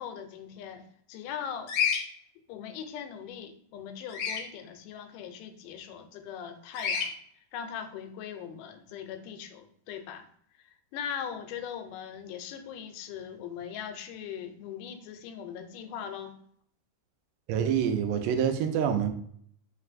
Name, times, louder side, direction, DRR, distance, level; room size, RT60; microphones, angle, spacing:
voice 1, 0.0-1.7 2.5-7.1 7.5-10.3 10.9-16.4, left 8 dB, 90° left, 8 dB, 2.1 m, -40 dB
Bird vocalization bird call bird song, 1.7-2.0 4.1-4.4 6.7-7.1, left 7 dB, 70° left, 1.9 m, -28 dB
voice 2, 17.5-19.1, right 8 dB, 90° right, 7 dB, 2.2 m, -26 dB
4.9 x 3.3 x 2.5 m, 0.63 s
omnidirectional pair, 3.6 m